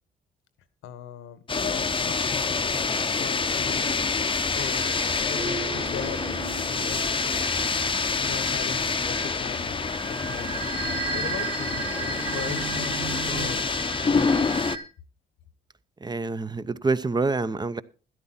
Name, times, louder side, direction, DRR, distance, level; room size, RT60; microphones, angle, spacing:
voice 1, 0.8-3.9 4.5-6.2 6.8-7.2 8.2-13.7 14.0-14.4, left 9 dB, 85° left, 1.4 m, -39 dB
sound 1, 1.5-14.8, left 4 dB, 25° left, 0.8 m, -27 dB
sound 2, 4.6-14.8, right 4 dB, 45° right, 2.9 m, -36 dB
sound 3, 5.4-8.5 10.8-13.5, right 4 dB, 90° right, 2.5 m, -39 dB
voice 2, 16.0-17.8, right 3 dB, 20° right, 0.7 m, -26 dB
12.5 x 11.0 x 4.2 m
cardioid pair, 90°, 20 cm